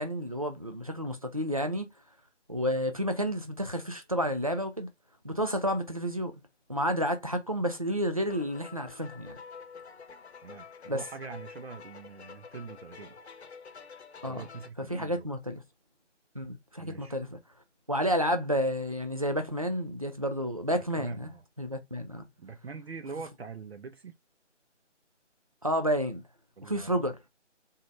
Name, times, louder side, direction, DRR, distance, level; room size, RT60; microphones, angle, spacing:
voice 1, 0.0-1.9 2.5-4.9 5.2-6.4 6.7-9.4 10.9-11.0 14.2-14.4 14.8-15.6 16.3-17.4 17.9-21.3 21.6-22.3 25.6-26.2 26.6-27.2, equal, 30° right, 0.4 m, -30 dB
sound 1, 8.2-14.7, left 5 dB, 60° left, 0.8 m, -48 dB
voice 2, 10.4-13.2 14.3-15.3 16.8-17.2 20.7-21.4 22.4-24.2 26.6-27.0, right 5 dB, 55° right, 0.7 m, -43 dB
4.0 x 3.7 x 3.1 m
figure-of-eight pair, 170°, 37 cm